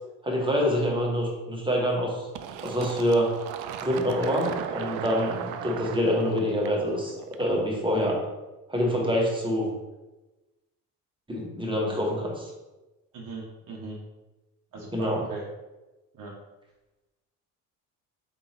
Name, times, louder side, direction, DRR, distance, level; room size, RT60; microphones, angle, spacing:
voice 1, 0.2-2.3 2.6-3.4 3.8-8.2 8.7-9.7 11.3-12.5 14.9-15.2, equal, 10° right, -2 dB, 1.4 m, -26 dB
Fill (with liquid), 2.4-7.8, right 9 dB, 70° right, 0.5 m, -37 dB
voice 2, 13.1-14.0 14.7-15.4 16.1-16.3, right 3 dB, 45° right, -2 dB, 0.9 m, -38 dB
4.4 x 3.5 x 2.9 m, 1.1 s
hypercardioid pair, 60°, 46 cm